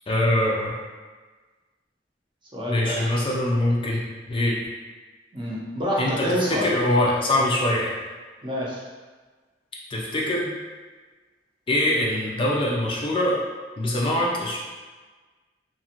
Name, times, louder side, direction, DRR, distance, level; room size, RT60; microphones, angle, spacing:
voice 1, 0.1-0.7 2.7-4.0 4.3-4.6 6.0-6.1 6.5-7.9 9.9-10.5 11.7-13.4 13.8-14.6, left 1 dB, 30° left, -3 dB, 0.4 m, -23 dB
voice 2, 2.5-3.3 5.3-6.8 8.4-8.8, equal, 25° right, -5 dB, 0.6 m, -27 dB
2.8 x 2.4 x 2.9 m, 1.3 s
head